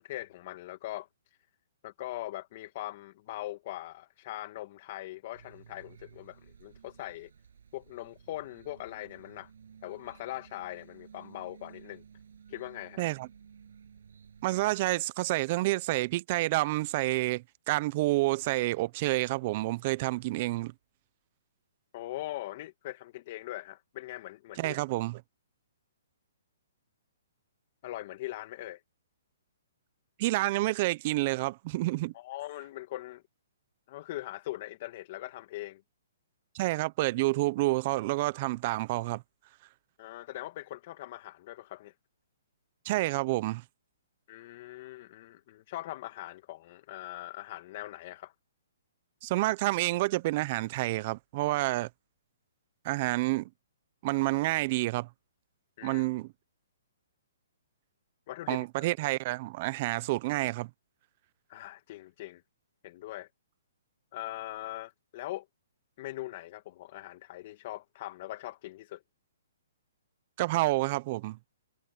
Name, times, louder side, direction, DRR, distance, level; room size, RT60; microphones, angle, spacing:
voice 1, 0.0-1.4 1.8-7.3 7.7-9.5 9.8-12.0 12.5-13.0 21.9-24.8 27.8-28.8 32.1-33.2 33.9-35.8 40.0-41.9 44.3-48.3 55.8-56.0 58.3-58.7 61.5-62.4 62.8-63.3 64.1-65.5 66.0-69.0, left 16 dB, 40° left, 2.0 m, -41 dB
sound 1, 5.3-14.8, right 7 dB, 75° right, 7.0 m, -55 dB
voice 2, 14.4-20.7 24.6-25.2 30.2-32.1 36.5-39.2 42.8-43.6 49.2-51.9 52.8-53.5 54.0-55.1 55.8-56.3 58.5-60.7 70.4-71.4, right 19 dB, 35° right, 0.6 m, -29 dB
hypercardioid pair, 155°, 0 cm